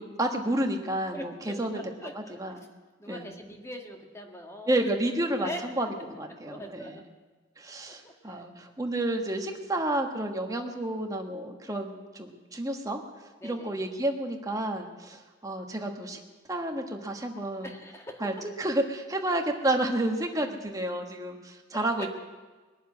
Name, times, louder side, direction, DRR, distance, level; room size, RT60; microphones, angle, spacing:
voice 1, 0.0-1.8 2.4-2.6 3.1-3.3 4.7-7.0 7.6-13.0 13.4-16.2 16.5-17.7 18.2-22.1, right 1 dB, 20° right, 3 dB, 1.4 m, -30 dB
voice 2, 1.1-2.7 3.0-4.8 5.3-5.8 6.4-7.0 8.0-8.4 13.4-13.8 17.6-18.3 21.7-22.1, equal, 15° left, 2 dB, 1.7 m, -42 dB
21.0 x 7.2 x 9.6 m, 1.3 s
head